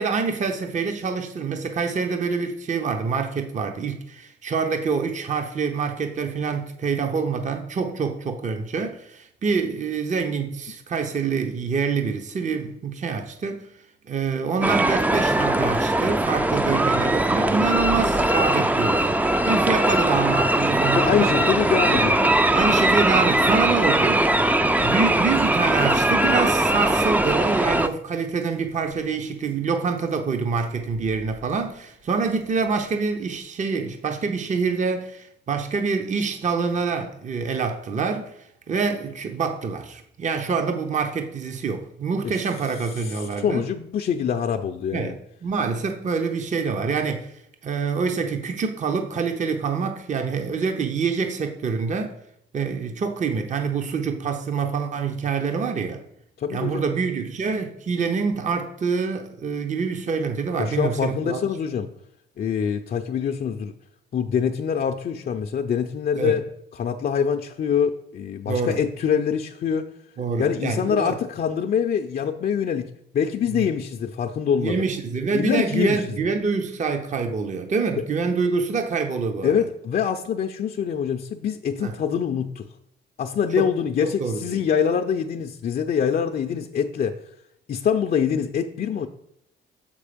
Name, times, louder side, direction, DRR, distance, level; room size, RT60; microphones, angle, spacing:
voice 1, 0.0-13.7 14.1-19.1 19.4-21.4 22.5-24.3 24.8-38.4 38.7-43.7 44.9-47.3 47.6-52.2 52.5-56.0 56.5-61.4 66.2-66.4 68.5-68.8 70.2-71.2 73.5-73.7 74.6-79.7 81.8-81.9 83.6-83.7 84.0-84.6, right 5 dB, 40° right, 0.7 m, -26 dB
sound 1, 14.6-27.9, right 1 dB, 10° right, 0.4 m, -20 dB
sound 2, 17.6-33.4, right 1 dB, 80° right, 1.3 m, -45 dB
voice 2, 21.0-22.3 43.0-45.1 56.4-56.9 60.6-61.9 62.4-63.7 64.1-69.9 70.4-74.8 75.3-76.0 79.4-82.7 83.2-87.2 87.7-89.1, left 7 dB, 50° left, 0.5 m, -24 dB
6.6 x 5.4 x 5.0 m
cardioid pair, 90°, 20 cm